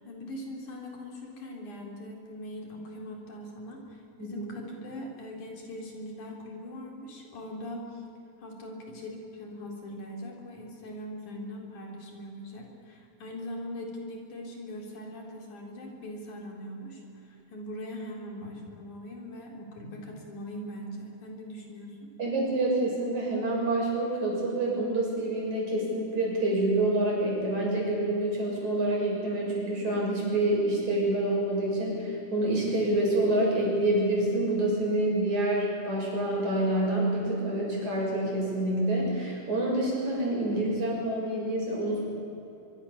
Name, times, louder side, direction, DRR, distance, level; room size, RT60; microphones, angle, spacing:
voice 1, 0.0-8.0 8.4-22.0, left 1 dB, 70° left, 1 dB, 5.3 m, -41 dB
voice 2, 22.2-42.0, right 1 dB, 60° right, -3 dB, 8.3 m, -27 dB
24.0 x 24.0 x 7.3 m, 3.0 s
omnidirectional pair, 3.7 m